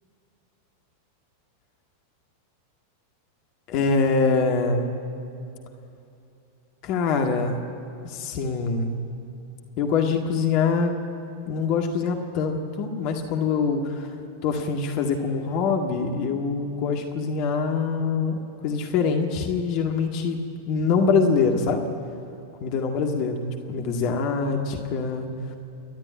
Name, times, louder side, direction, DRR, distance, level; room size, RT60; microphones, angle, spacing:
voice 1, 3.7-4.9 6.8-7.6 8.0-8.9 9.8-11.0 11.5-14.1 14.4-18.4 18.6-20.4 20.7-21.8 22.6-23.4 23.7-25.3, left 5 dB, 45° left, 3 dB, 2.0 m, -24 dB
29.0 x 12.0 x 9.5 m, 2.7 s
figure-of-eight pair, 90°, 0 cm